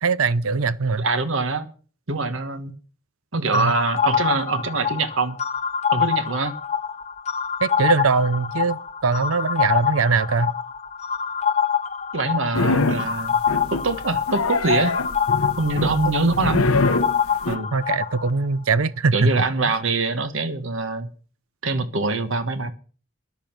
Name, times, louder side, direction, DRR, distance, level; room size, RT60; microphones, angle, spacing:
voice 1, 0.0-1.0 3.5-3.7 7.6-10.5 17.7-19.3, right 4 dB, 85° right, 0.7 m, -21 dB
voice 2, 1.0-1.7 2.1-2.7 3.3-5.4 5.9-6.5 12.1-13.4 13.7-15.0 15.6-16.6 17.5-17.7 19.1-21.1 21.6-22.7, right 3 dB, 70° right, 1.3 m, -24 dB
sound 1, 3.5-18.3, left 7 dB, 30° left, 0.7 m, -26 dB
sound 2, 12.5-13.1 13.5-14.0 14.3-17.6, left 3 dB, 90° left, 1.0 m, -23 dB
14.0 x 10.5 x 6.0 m
head